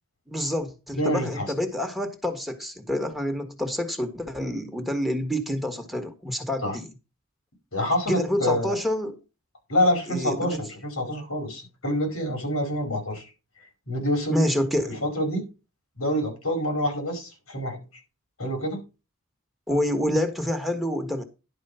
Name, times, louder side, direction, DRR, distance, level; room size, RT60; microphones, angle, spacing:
voice 1, 0.3-6.9 8.1-9.2 10.1-10.6 14.3-15.0 19.7-21.2, left 1 dB, ahead, 1.4 m, -27 dB
voice 2, 1.0-1.5 6.6-6.8 7.7-8.7 9.7-13.3 13.9-14.5 15.0-15.5 16.0-17.8 18.4-18.8, left 1 dB, 90° left, 5.0 m, -26 dB
11.0 x 4.8 x 5.6 m
head